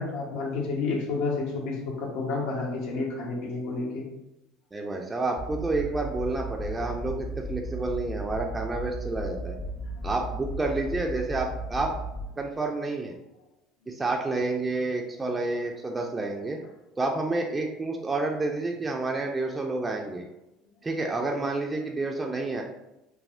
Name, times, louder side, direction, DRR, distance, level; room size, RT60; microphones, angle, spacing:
voice 1, 0.0-4.0, left 3 dB, 75° left, -1 dB, 0.8 m, -30 dB
voice 2, 4.7-9.6 10.0-11.9 12.4-13.1 13.9-16.6 17.0-20.2 20.8-22.6, right 2 dB, 20° right, 1 dB, 0.3 m, -29 dB
sound 1, 5.4-12.2, equal, 40° left, 0.7 m, -35 dB
3.4 x 2.0 x 2.4 m, 0.92 s
supercardioid pair, 95°, 0 cm